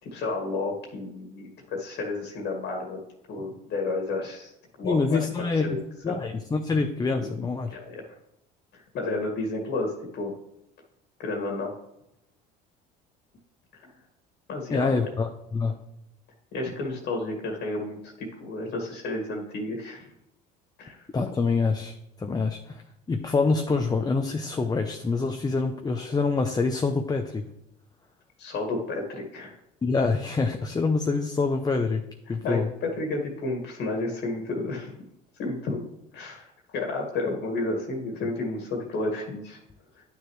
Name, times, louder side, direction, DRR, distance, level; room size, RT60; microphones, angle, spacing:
voice 1, 0.0-3.0 3.3-4.5 4.8-5.3 5.6-6.2 7.7-8.0 8.7-10.4 11.2-11.7 13.8-13.9 14.5-15.1 16.5-20.1 20.8-21.0 28.4-29.5 32.4-34.9 35.4-35.9 36.1-39.6 40.0-40.1, left 2 dB, 60° left, 1 dB, 2.0 m, -31 dB
voice 2, 4.8-7.8 14.7-15.8 21.1-22.8 23.1-27.4 29.8-32.0 32.3-32.7, left 4 dB, 20° left, 5 dB, 0.7 m, -26 dB
9.9 x 6.5 x 3.2 m, 0.83 s
supercardioid pair, 85°, 20 cm